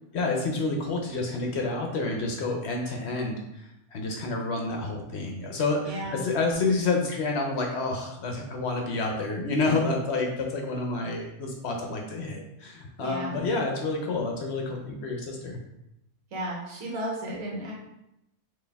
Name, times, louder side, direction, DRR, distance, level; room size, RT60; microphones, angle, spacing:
voice 1, 0.1-15.6, left 3 dB, 60° left, 1 dB, 0.8 m, -29 dB
voice 2, 5.9-6.2 13.0-13.3 16.3-17.7, right 1 dB, 65° right, -2 dB, 1.4 m, -33 dB
4.2 x 2.7 x 3.4 m, 0.86 s
omnidirectional pair, 1.5 m